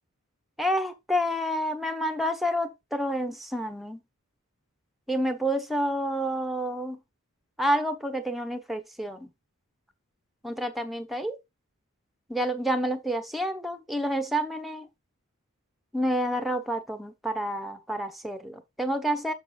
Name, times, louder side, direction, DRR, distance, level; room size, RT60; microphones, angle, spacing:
voice 1, 0.6-4.0 5.1-7.0 7.6-9.3 10.4-11.4 12.3-14.9 15.9-19.3, equal, ahead, 1.1 m, -29 dB
6.9 x 6.7 x 3.8 m
head